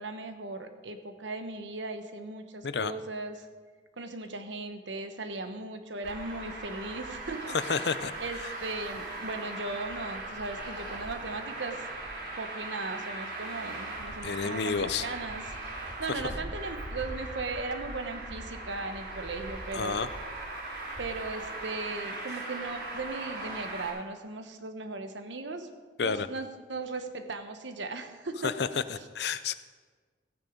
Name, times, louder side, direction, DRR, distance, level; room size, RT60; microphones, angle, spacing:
voice 1, 0.0-3.5 4.0-7.9 8.2-11.8 12.4-15.4 15.8-20.0 21.0-25.7 26.0-28.5 28.9-29.1, right 3 dB, 80° right, 7 dB, 1.2 m, -37 dB
Traffic noise roadway noise, 6.0-23.9, right 2 dB, 65° right, 3.6 m, -39 dB
voice 2, 7.7-8.1 14.2-15.1 19.7-20.1 26.0-26.3 28.4-29.5, left 5 dB, 65° left, 13 dB, 0.5 m, -30 dB
15.0 x 9.3 x 5.1 m, 1.4 s
head